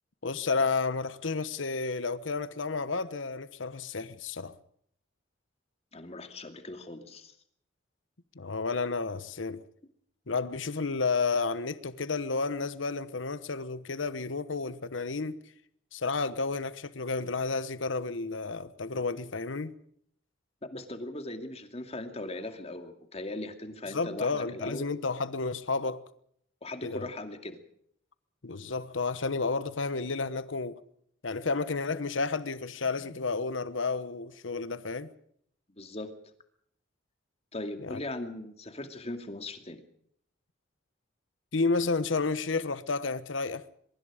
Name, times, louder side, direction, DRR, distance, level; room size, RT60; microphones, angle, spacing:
voice 1, 0.2-4.5 8.3-9.6 10.3-15.4 15.9-19.7 23.9-26.0 26.8-27.1 28.4-30.8 31.2-35.1 37.8-38.0 41.5-43.6, left 4 dB, 90° left, 1.0 m, -31 dB
voice 2, 5.9-7.3 20.7-24.9 26.6-27.6 35.8-36.1 37.5-39.8, left 2 dB, 35° left, 2.4 m, -39 dB
24.0 x 22.5 x 5.0 m
head